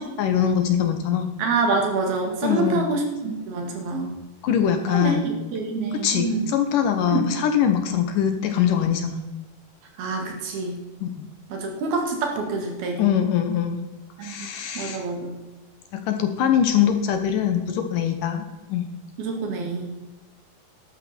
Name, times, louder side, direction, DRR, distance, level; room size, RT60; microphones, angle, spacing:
voice 1, 0.0-1.3 2.4-2.9 4.4-5.3 6.0-9.2 11.0-11.3 13.0-13.8 14.2-15.0 15.9-18.9, left 9 dB, 70° left, 7 dB, 2.3 m, -23 dB
voice 2, 1.4-4.2 4.9-5.2 5.5-6.5 7.1-7.4 10.0-10.8 11.5-13.0 14.2-14.5 14.8-15.4 19.2-19.9, right 3 dB, 75° right, 2 dB, 4.1 m, -26 dB
13.0 x 11.0 x 4.3 m, 1.1 s
omnidirectional pair, 4.4 m